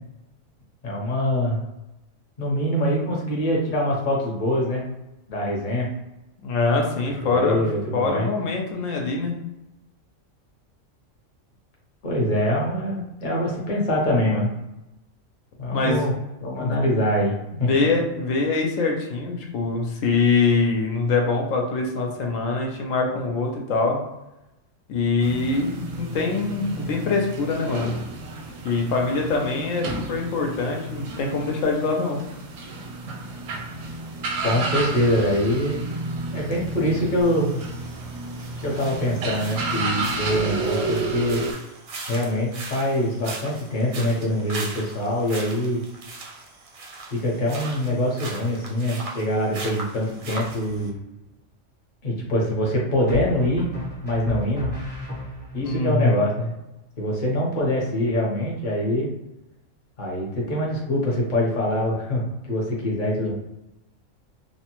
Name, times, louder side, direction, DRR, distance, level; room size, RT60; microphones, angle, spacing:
voice 1, 0.8-1.6 2.4-4.8 5.3-5.9 7.2-8.3 12.0-14.5 15.6-16.1 16.4-17.7 34.4-35.8 36.3-37.6 38.6-41.4 42.1-45.8 47.1-51.0 52.0-53.6 54.0-54.7 55.5-56.5 57.0-59.1 60.0-63.3, equal, 45° left, -2 dB, 0.8 m, -24 dB
voice 2, 6.4-7.6 7.9-9.4 15.7-16.1 16.6-16.7 17.6-24.0 24.9-28.0 28.6-32.2 55.6-56.2, left 3 dB, 85° left, 1 dB, 1.0 m, -24 dB
sound 1, 25.2-41.5, right 2 dB, 85° right, 1.0 m, -31 dB
sound 2, 37.2-50.9, right 3 dB, 55° right, 0.6 m, -39 dB
sound 3, 50.4-51.0 53.1-55.7, left 1 dB, 10° left, 0.6 m, -34 dB
2.9 x 2.1 x 2.9 m, 0.94 s
omnidirectional pair, 1.3 m